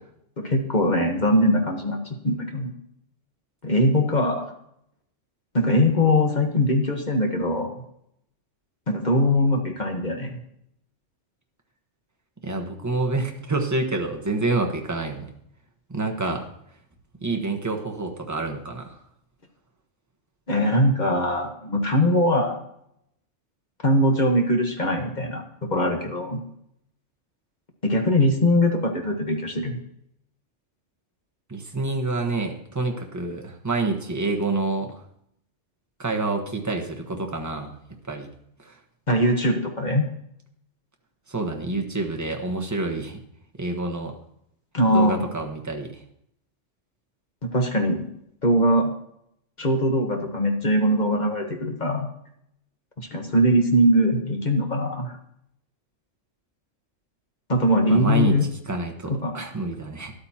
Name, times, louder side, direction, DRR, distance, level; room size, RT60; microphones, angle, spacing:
voice 1, 0.4-2.7 3.6-4.4 5.5-7.8 8.9-10.4 20.5-22.6 23.8-26.4 27.8-29.8 39.1-40.0 44.7-45.2 47.5-48.1 48.4-48.9 49.6-52.1 53.0-55.1 57.5-58.5 59.1-59.3, equal, 35° left, 3 dB, 1.3 m, -21 dB
voice 2, 12.4-15.3 15.9-16.5 17.2-19.0 31.5-35.0 36.0-37.8 38.1-38.3 38.6-38.8 41.3-43.2 43.6-44.2 44.9-46.0 57.9-58.4 58.7-60.1, right 3 dB, 15° right, 1 dB, 1.1 m, -27 dB
13.0 x 11.5 x 2.9 m, 0.75 s
omnidirectional pair, 1.3 m